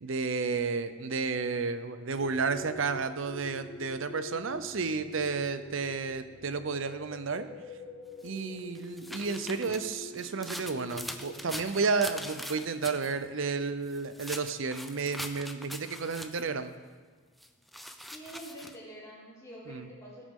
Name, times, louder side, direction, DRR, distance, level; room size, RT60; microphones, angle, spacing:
voice 1, 0.0-7.5 8.2-16.7 19.7-19.9, right 4 dB, 65° right, 11 dB, 0.6 m, -32 dB
sound 1, 2.1-13.2, left 2 dB, 75° left, 2.9 m, -47 dB
sound 2, 8.2-13.1 13.9-16.5 17.4-18.8, equal, ahead, 0.5 m, -42 dB
voice 2, 18.1-20.3, equal, 15° left, -8 dB, 3.7 m, -46 dB
17.0 x 8.3 x 3.7 m, 1.5 s
head